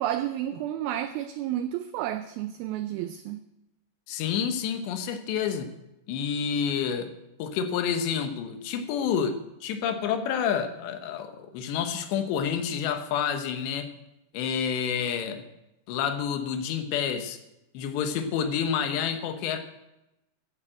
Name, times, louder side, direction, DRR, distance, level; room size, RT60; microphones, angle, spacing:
voice 1, 0.0-3.4, right 12 dB, 85° right, 2.1 m, -31 dB
voice 2, 4.1-5.7 6.1-7.1 7.4-13.9 14.3-15.5 15.9-17.4 17.7-19.6, left 7 dB, 85° left, 3.3 m, -29 dB
13.5 x 8.4 x 7.9 m
omnidirectional pair, 5.0 m